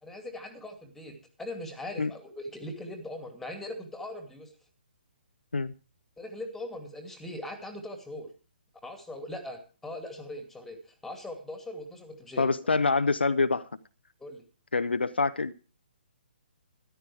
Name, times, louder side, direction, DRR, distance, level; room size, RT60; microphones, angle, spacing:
voice 1, 0.0-4.5 6.2-8.3 8.8-12.5 14.2-14.4, left 1 dB, 5° left, 2.5 m, -40 dB
voice 2, 12.4-13.8 14.7-15.5, left 3 dB, 75° left, 0.8 m, -26 dB
13.5 x 12.0 x 4.7 m
figure-of-eight pair, 135°, 6 cm